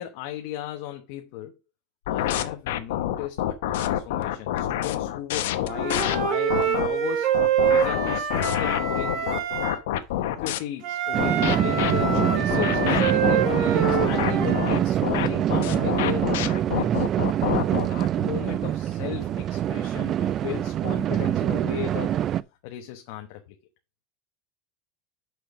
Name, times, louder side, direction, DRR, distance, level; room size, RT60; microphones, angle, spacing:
voice 1, 0.0-1.5 2.1-7.4 7.6-9.3 10.4-17.1 17.9-22.2 22.6-23.4, left 12 dB, 60° left, 1.0 m, -36 dB
sound 1, 2.1-6.9 7.3-10.6 11.2-17.9, left 12 dB, 85° left, 0.9 m, -27 dB
Wind instrument woodwind instrument, 5.7-9.8 10.8-14.7, right 9 dB, 50° right, 2.0 m, -26 dB
sound 2, 11.1-22.4, right 11 dB, 30° right, 0.3 m, -25 dB
6.2 x 5.1 x 6.0 m
supercardioid pair, 160°, 0 cm